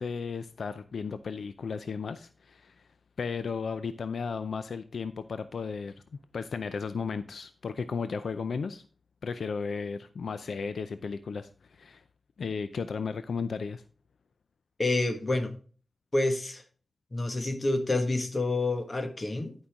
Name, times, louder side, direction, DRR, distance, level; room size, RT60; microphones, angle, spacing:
voice 1, 0.0-2.7 3.2-5.9 6.3-8.8 9.2-12.0 12.4-13.8, left 5 dB, 85° left, 11 dB, 0.4 m, -34 dB
voice 2, 14.8-15.6 16.1-16.6 17.1-19.5, left 2 dB, 40° left, 6 dB, 1.5 m, -28 dB
11.5 x 5.5 x 3.6 m, 0.40 s
wide cardioid pair, 80°, 0 cm